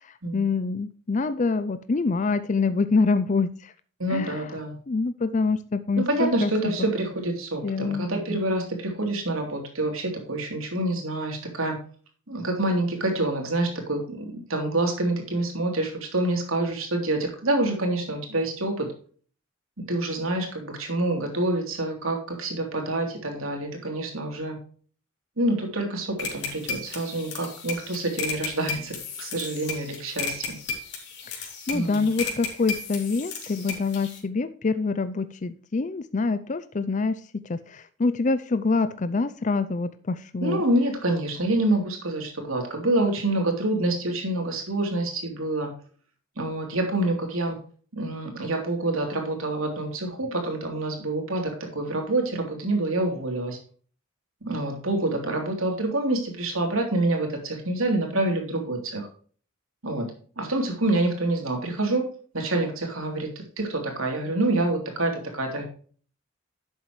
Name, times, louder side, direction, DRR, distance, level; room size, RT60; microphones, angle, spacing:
voice 1, 0.3-3.7 4.1-4.5 4.9-6.7 7.6-8.1 31.3-40.6, left 4 dB, 35° left, 12 dB, 0.5 m, -26 dB
voice 2, 4.0-4.8 6.0-11.8 12.3-18.9 19.9-24.6 25.4-30.4 31.7-32.1 40.4-45.7 46.4-47.6 47.9-53.6 54.4-59.1 59.8-60.1 60.4-62.1 62.3-63.3 63.6-65.6, right 2 dB, 80° right, 2 dB, 3.3 m, -27 dB
sound 1, 26.2-34.2, left 5 dB, 55° left, 3.3 m, -34 dB
11.5 x 7.9 x 3.2 m, 0.43 s
head